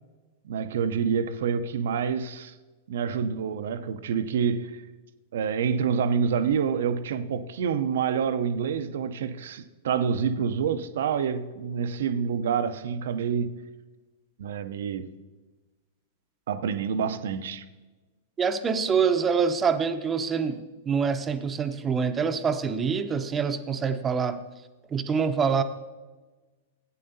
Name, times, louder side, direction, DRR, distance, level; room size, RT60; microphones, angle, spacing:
voice 1, 0.4-2.5 2.9-4.8 5.3-13.6 14.4-15.1 16.5-17.6, right 7 dB, 65° right, 0.6 m, -27 dB
voice 2, 18.4-24.4 24.9-25.6, right 6 dB, 20° right, 0.7 m, -25 dB
15.0 x 9.2 x 2.7 m
figure-of-eight pair, 100°, 0 cm